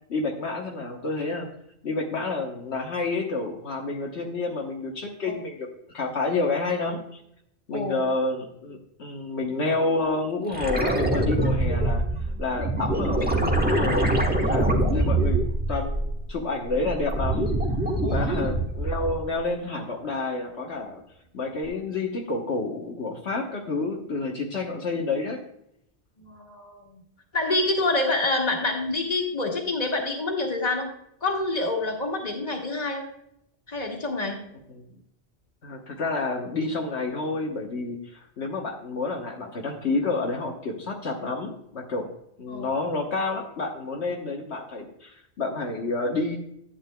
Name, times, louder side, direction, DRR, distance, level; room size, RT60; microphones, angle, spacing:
voice 1, 0.1-1.5 1.8-5.7 5.9-7.2 7.7-14.1 14.4-17.5 18.1-21.0 21.3-25.4 34.7-34.8 35.6-42.1 42.4-46.4, left 3 dB, 70° left, 0 dB, 1.4 m, -29 dB
voice 2, 7.7-8.0 18.0-18.3 26.2-27.0 27.3-30.9 31.2-33.1 33.7-34.4 42.5-42.8, left 2 dB, 35° left, 1 dB, 1.8 m, -27 dB
sound 1, 10.5-16.3 16.7-19.2 21.6-21.7, right 1 dB, 10° right, 1.2 m, -24 dB
11.0 x 8.8 x 2.2 m, 0.75 s
omnidirectional pair, 1.2 m